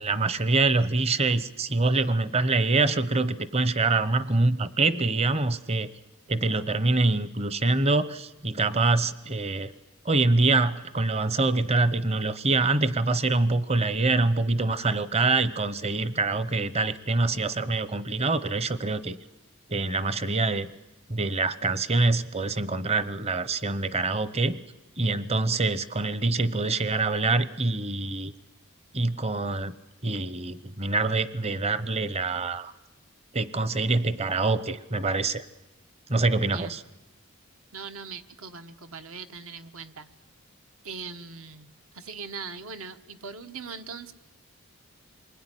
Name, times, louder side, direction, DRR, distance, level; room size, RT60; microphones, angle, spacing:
voice 1, 0.0-5.9 6.3-9.7 10.0-19.2 19.7-20.7 21.1-24.6 25.0-28.3 28.9-29.7 30.0-32.7 33.3-35.5 36.1-36.8, right 3 dB, 30° right, 15 dB, 0.8 m, -25 dB
voice 2, 37.7-40.1 40.8-44.1, right 5 dB, 75° right, 9 dB, 1.3 m, -40 dB
28.0 x 21.0 x 10.0 m, 1.0 s
head